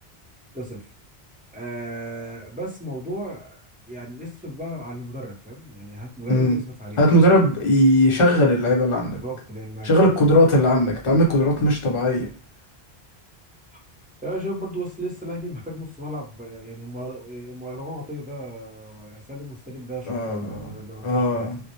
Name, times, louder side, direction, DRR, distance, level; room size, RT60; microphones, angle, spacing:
voice 1, 0.5-0.8 1.5-7.3 9.2-9.9 13.7-13.8 14.2-21.5, right 1 dB, 10° right, -4 dB, 0.6 m, -35 dB
voice 2, 7.0-9.2 9.8-12.3 20.1-20.7 21.0-21.6, equal, 35° left, -1 dB, 0.7 m, -18 dB
2.1 x 2.0 x 2.9 m, 0.41 s
omnidirectional pair, 1.0 m